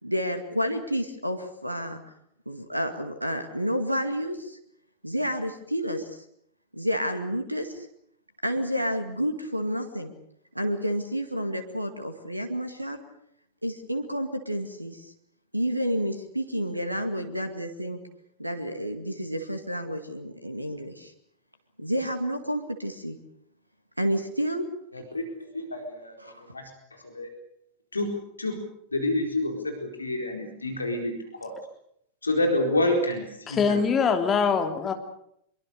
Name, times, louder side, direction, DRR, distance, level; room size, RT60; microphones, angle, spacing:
voice 1, 0.0-2.0 2.5-4.6 5.0-6.2 6.7-7.9 8.4-10.1 10.5-13.0 13.6-15.1 15.5-18.0 18.4-21.1 21.8-23.2 24.0-24.7 26.2-26.4, equal, 85° right, 8 dB, 2.1 m, -30 dB
voice 2, 25.5-26.2 26.5-26.7 27.0-27.3 27.9-28.1 28.4-28.6 28.9-31.5 32.2-33.8, left 1 dB, 80° left, 3 dB, 4.3 m, -28 dB
voice 3, 33.5-34.9, left 6 dB, 25° left, 6 dB, 2.9 m, -23 dB
25.0 x 23.0 x 6.7 m, 0.73 s
figure-of-eight pair, 90°, 0 cm